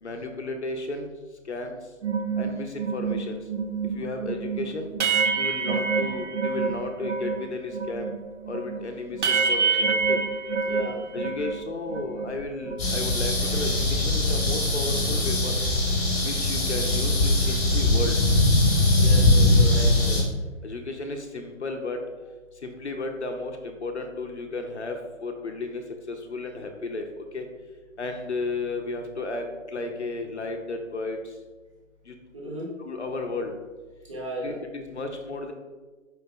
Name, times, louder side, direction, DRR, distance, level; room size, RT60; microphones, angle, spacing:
voice 1, 0.0-1.1 1.5-1.8 2.4-3.4 3.9-4.9 5.3-8.1 8.5-10.2 11.1-15.6 16.2-18.2 20.0-20.2 20.6-22.0 22.6-27.5 28.0-31.2 32.1-32.2 32.8-33.5 34.4-35.5, left 3 dB, 60° left, 4 dB, 0.6 m, -33 dB
sound 1, 2.0-7.4 7.7-11.6 11.9-13.0, right 5 dB, 60° right, 0.5 m, -27 dB
voice 2, 10.6-11.1 18.9-20.0 32.3-32.7 34.0-34.6, right 1 dB, 25° right, -3 dB, 0.7 m, -35 dB
sound 2, 12.8-20.2, left 2 dB, 25° left, 1.0 m, -21 dB
4.9 x 2.8 x 3.5 m, 1.3 s
figure-of-eight pair, 140°, 40 cm